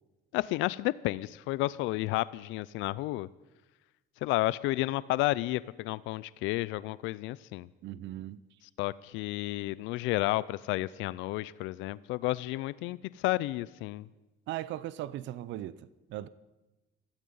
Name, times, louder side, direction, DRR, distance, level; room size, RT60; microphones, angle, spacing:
voice 1, 0.3-3.3 4.2-7.7 8.8-14.1, left 18 dB, 90° left, 0.5 m, -31 dB
voice 2, 7.8-8.4 14.5-16.3, right 13 dB, 75° right, 0.6 m, -38 dB
15.5 x 15.0 x 5.5 m
cardioid pair, 105°, 19 cm